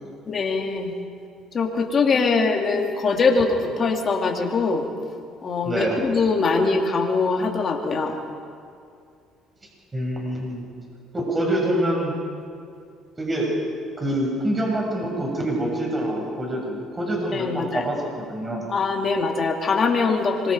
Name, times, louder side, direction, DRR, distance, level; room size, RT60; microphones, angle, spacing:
voice 1, 0.3-0.9 1.5-4.9 5.4-8.2 17.3-17.8 18.7-20.5, left 4 dB, 40° left, 1 dB, 3.5 m, -22 dB
voice 2, 5.6-6.0 9.9-10.7 11.1-12.1 13.2-13.5 14.0-18.7, right 1 dB, 20° right, -1 dB, 7.2 m, -26 dB
26.0 x 24.0 x 5.1 m, 2.3 s
supercardioid pair, 80°, 0 cm